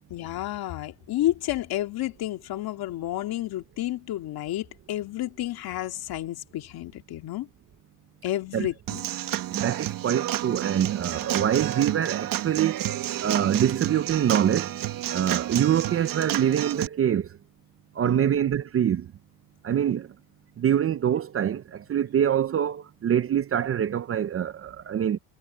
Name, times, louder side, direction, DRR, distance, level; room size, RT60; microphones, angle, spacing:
voice 1, 0.1-7.5 8.2-9.0 18.0-18.4, left 14 dB, 55° left, 2.5 m, -31 dB
Human voice / Acoustic guitar / Drum, 8.9-16.9, right 13 dB, 50° right, 1.4 m, -30 dB
voice 2, 9.5-12.8 13.2-14.8 15.1-17.3 17.9-19.1 19.6-20.1 20.6-25.2, right 9 dB, 30° right, 0.7 m, -25 dB
cardioid pair, 125°, 43 cm